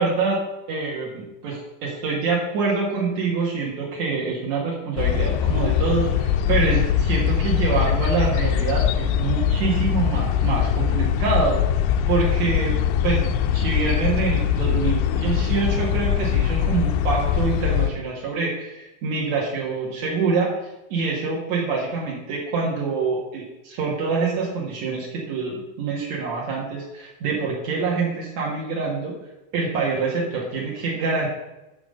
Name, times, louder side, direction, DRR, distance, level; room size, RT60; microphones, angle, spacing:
voice 1, 0.0-11.6 12.1-12.7 13.0-29.1 29.5-31.3, right 4 dB, 80° right, -3 dB, 1.5 m, -25 dB
sound 1, 5.0-17.9, left 9 dB, 90° left, 2.5 m, -22 dB
12.0 x 4.0 x 6.5 m, 0.98 s
omnidirectional pair, 5.7 m